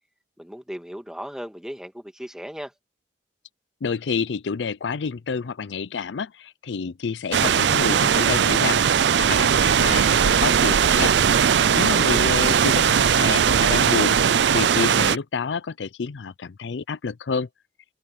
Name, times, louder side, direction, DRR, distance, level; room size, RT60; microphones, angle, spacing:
voice 1, 0.4-2.7 11.9-12.3, equal, 5° right, 2.0 m, -36 dB
voice 2, 3.8-11.2 11.7-17.5, left 5 dB, 85° left, 0.5 m, -29 dB
sound 1, 7.3-15.2, right 7 dB, 80° right, 0.5 m, -19 dB
open air
head